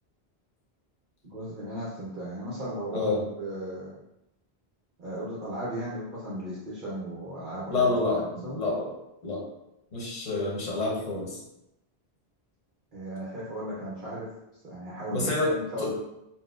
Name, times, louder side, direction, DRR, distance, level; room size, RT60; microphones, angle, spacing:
voice 1, 1.3-3.1 3.4-3.9 5.0-7.9 8.4-8.6 12.9-14.3 14.6-15.9, right 1 dB, 55° right, -8 dB, 0.8 m, -36 dB
voice 2, 2.9-3.2 7.7-8.9 9.2-9.4 9.9-11.4 15.1-15.5 15.8-15.9, left 3 dB, 40° left, -3 dB, 0.9 m, -28 dB
4.2 x 2.1 x 2.3 m, 0.87 s
omnidirectional pair, 1.1 m